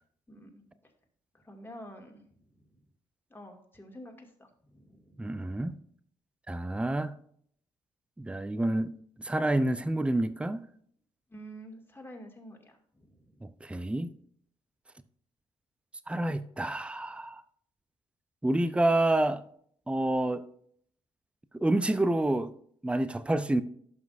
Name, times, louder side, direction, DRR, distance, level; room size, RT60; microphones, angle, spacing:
voice 1, 0.3-0.9 1.3-2.8 3.3-5.2 11.3-13.5, equal, 15° left, 2.2 m, -49 dB
voice 2, 5.2-5.7 6.5-7.2 8.2-8.9 9.2-10.6 13.4-14.1 16.1-17.4 18.4-19.4 19.9-20.4 21.5-22.5 22.8-23.6, right 1 dB, 5° right, 0.6 m, -28 dB
11.5 x 6.0 x 2.6 m
hypercardioid pair, 45°, 15 cm